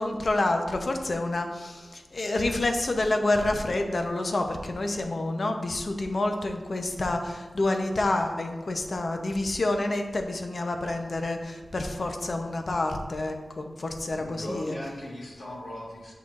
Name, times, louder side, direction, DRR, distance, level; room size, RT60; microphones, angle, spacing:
voice 1, 0.0-14.7, left 2 dB, 50° left, 4 dB, 0.7 m, -28 dB
voice 2, 14.1-16.1, left 1 dB, 65° left, -4 dB, 1.5 m, -38 dB
8.2 x 5.6 x 2.5 m, 1.3 s
wide cardioid pair, 100°, 0 cm